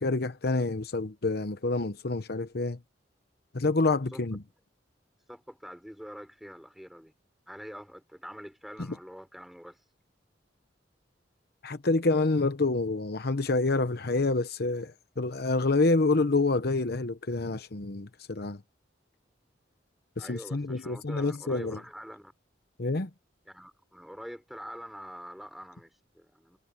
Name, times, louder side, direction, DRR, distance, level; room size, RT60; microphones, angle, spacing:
voice 1, 0.0-2.8 3.5-4.4 11.6-18.6 20.2-21.8 22.8-23.1, left 3 dB, 60° left, 0.9 m, -27 dB
voice 2, 3.9-4.2 5.3-7.1 7.5-9.8 20.2-22.3 23.4-26.6, equal, ahead, 4.2 m, -45 dB
head